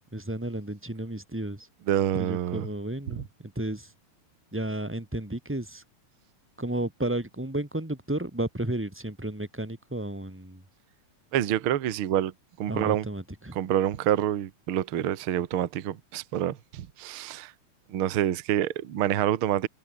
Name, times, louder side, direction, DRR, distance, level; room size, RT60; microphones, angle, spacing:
voice 1, 0.1-1.7 2.2-3.2 3.5-3.9 4.5-5.8 6.6-10.6 12.7-13.6, right 1 dB, 5° right, 2.5 m, -32 dB
voice 2, 1.9-2.7 3.1-3.2 11.3-12.3 12.6-13.1 13.5-17.5 17.9-19.7, right 11 dB, 55° right, 1.7 m, -27 dB
omnidirectional pair, 3.5 m